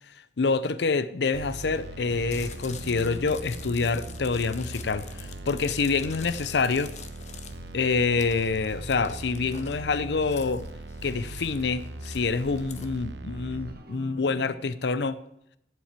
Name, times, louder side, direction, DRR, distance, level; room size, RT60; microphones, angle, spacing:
voice 1, 0.4-6.9 7.7-10.6 11.0-15.2, left 4 dB, 70° left, 15 dB, 0.6 m, -27 dB
sound 1, 1.3-13.7, right 2 dB, 75° right, 1.0 m, -40 dB
Chewing mastication, 2.2-12.9, left 7 dB, 40° left, 0.7 m, -46 dB
sound 2, 2.3-14.8, left 1 dB, 60° right, 1.4 m, -50 dB
7.7 x 7.3 x 8.2 m, 0.75 s
head